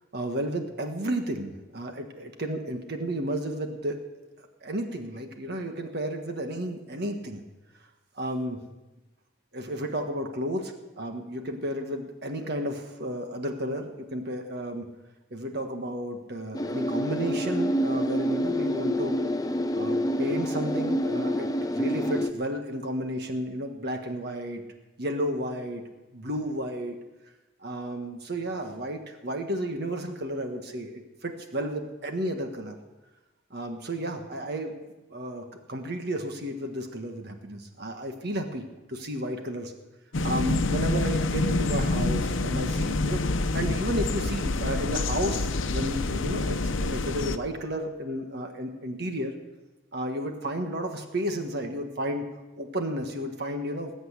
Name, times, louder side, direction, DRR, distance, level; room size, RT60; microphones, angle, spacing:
voice 1, 0.1-4.0 4.4-7.4 8.2-8.6 9.5-14.9 15.3-19.2 19.7-24.6 25.0-25.8 26.1-27.0 27.6-32.8 33.5-34.7 35.1-39.7 40.2-49.3 49.9-52.3 52.6-53.9, right 1 dB, 55° right, 4 dB, 1.5 m, -32 dB
sound 1, 16.5-22.3, equal, 20° left, 0.7 m, -27 dB
sound 2, 40.1-47.4, left 2 dB, 75° left, 0.8 m, -27 dB
20.5 x 8.1 x 8.3 m, 1.1 s
head